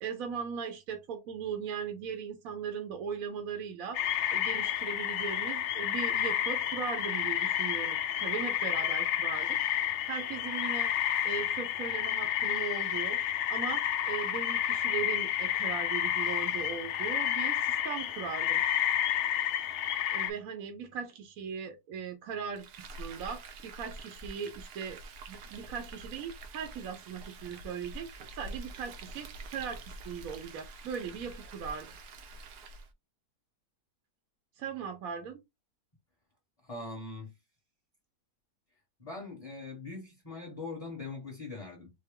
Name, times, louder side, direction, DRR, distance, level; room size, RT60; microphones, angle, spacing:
voice 1, 0.0-4.0 4.3-9.6 10.1-10.9 11.2-13.2 13.5-18.6 20.1-25.0 25.3-28.1 28.3-31.9 34.6-35.4, right 7 dB, 70° right, 1.0 m, -39 dB
sound 1, 3.9-20.3, left 10 dB, 70° left, 0.7 m, -30 dB
Frying (food), 22.5-32.9, right 2 dB, 85° right, 1.3 m, -46 dB
voice 2, 36.6-37.3 39.0-41.9, left 3 dB, 25° left, 0.9 m, -41 dB
4.3 x 2.0 x 3.5 m
omnidirectional pair, 1.7 m